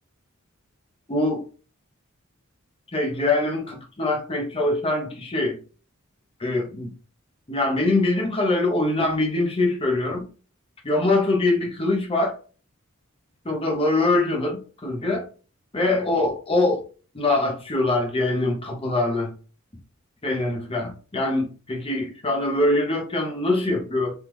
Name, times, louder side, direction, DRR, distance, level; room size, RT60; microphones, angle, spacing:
voice 1, 1.1-1.4 2.9-5.6 6.4-6.9 7.5-10.3 10.8-12.3 13.4-15.3 15.7-16.8 17.1-19.3 20.2-24.1, left 2 dB, 25° left, 0.9 m, -23 dB
3.5 x 2.4 x 2.9 m
head